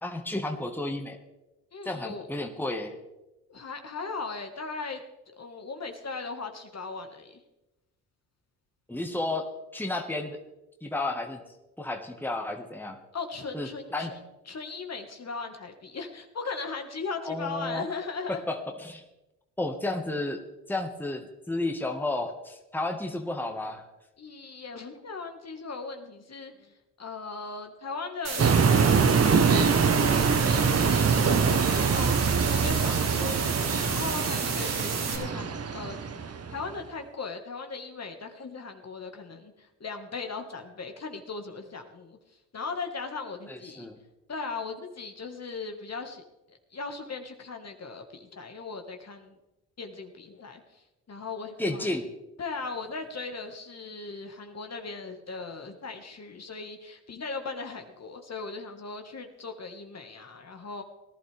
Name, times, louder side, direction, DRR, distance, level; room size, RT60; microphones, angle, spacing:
voice 1, 0.0-1.2 1.8-3.0 8.9-9.5 9.7-10.4 10.8-11.4 11.8-13.0 13.5-14.1 17.2-17.9 18.3-19.0 19.6-20.4 20.7-23.8 43.5-44.0 51.6-52.1, left 2 dB, 5° left, 3 dB, 1.6 m, -32 dB
voice 2, 1.7-2.3 3.5-5.0 5.4-7.4 13.1-14.2 14.5-18.4 24.2-28.6 28.9-42.2 42.5-43.9 44.3-46.2 46.5-49.4 49.8-50.8 51.1-51.9 52.4-60.8, left 4 dB, 35° left, 5 dB, 1.8 m, -38 dB
sound 1, 28.2-35.2, right 5 dB, 65° right, 2.9 m, -32 dB
sound 2, 28.4-36.7, right 5 dB, 35° right, 1.1 m, -24 dB
18.5 x 11.5 x 3.5 m, 0.98 s
supercardioid pair, 65°, 43 cm